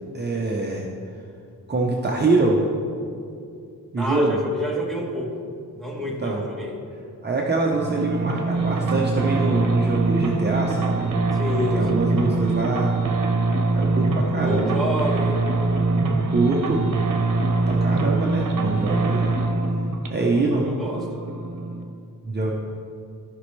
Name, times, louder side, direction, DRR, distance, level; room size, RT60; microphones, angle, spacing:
voice 1, 0.1-0.9 1.7-2.6 3.9-4.4 6.0-6.4 7.2-11.1 11.7-12.9 13.7-14.8 16.3-16.8 17.7-19.3 20.1-20.6 22.2-22.5, right 3 dB, 30° right, -2 dB, 0.7 m, -24 dB
voice 2, 4.0-5.4 5.7-6.8 11.3-12.1 14.4-15.4 18.8-19.2 20.2-21.1, equal, ahead, -3 dB, 1.3 m, -29 dB
sound 1, 7.7-21.8, right 3 dB, 65° right, 0.9 m, -23 dB
15.0 x 5.2 x 3.3 m, 2.4 s
wide cardioid pair, 145°, 34 cm